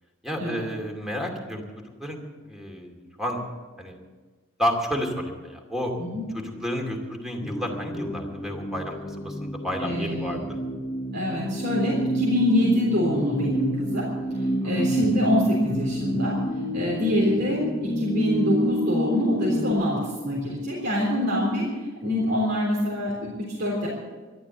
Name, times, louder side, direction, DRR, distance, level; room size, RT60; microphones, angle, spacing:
voice 1, 0.2-2.2 2.5-3.4 3.8-4.0 4.6-5.9 6.3-10.6 14.6-15.0, equal, ahead, 2 dB, 2.4 m, -31 dB
sound 1, 7.4-19.7, right 1 dB, 25° left, 1.1 m, -28 dB
voice 2, 9.8-10.4 11.1-14.1 14.6-16.3 16.7-21.6 22.0-23.9, left 1 dB, 55° right, -5 dB, 3.6 m, -25 dB
13.0 x 12.0 x 7.9 m, 1.4 s
head